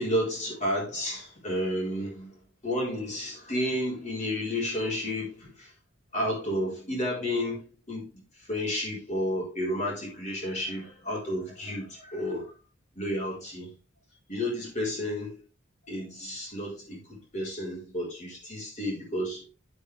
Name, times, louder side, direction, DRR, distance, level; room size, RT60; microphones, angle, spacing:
voice 1, 0.0-5.7 6.1-12.5 12.9-13.8 14.3-15.4 15.9-19.5, left 1 dB, 35° left, 4.4 m, -32 dB
8.4 x 7.8 x 3.4 m
head